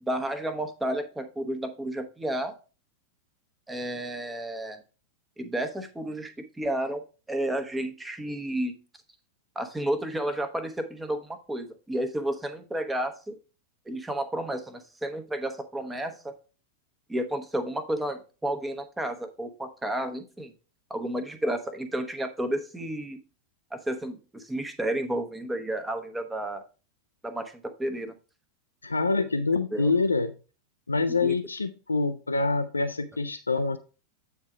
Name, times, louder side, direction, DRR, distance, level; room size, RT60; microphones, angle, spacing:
voice 1, 0.0-2.5 3.7-4.8 5.4-7.0 7.3-8.7 9.5-13.3 13.9-16.3 17.1-20.5 20.9-23.2 23.7-26.6 27.2-28.1 29.7-29.9 31.1-31.3, right 1 dB, 10° right, 7 dB, 1.0 m, -31 dB
voice 2, 28.8-30.3 30.9-33.8, left 3 dB, 80° left, 9 dB, 0.4 m, -26 dB
8.6 x 3.6 x 4.6 m, 0.35 s
figure-of-eight pair, 90°, 0 cm